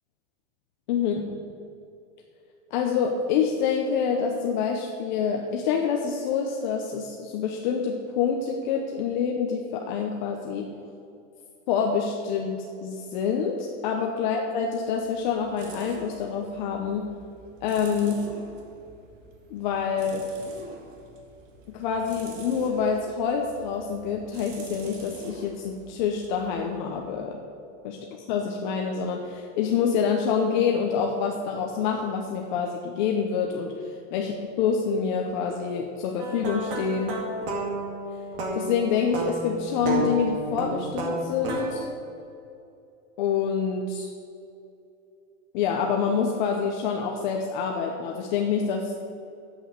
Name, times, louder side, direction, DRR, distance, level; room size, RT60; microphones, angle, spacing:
voice 1, 0.9-1.4 2.7-10.7 11.7-17.0 17.6-18.2 19.5-20.2 21.7-27.4 27.8-28.0 28.3-37.2 38.5-41.9 43.2-44.1 45.5-48.9, left 6 dB, 40° left, 1 dB, 0.9 m, -27 dB
sound 1, 14.6-27.3, right 3 dB, 85° right, 2.0 m, -47 dB
sound 2, 36.2-41.7, right 1 dB, 45° right, 2.3 m, -31 dB
9.8 x 8.1 x 6.6 m, 2.6 s
supercardioid pair, 170°, 37 cm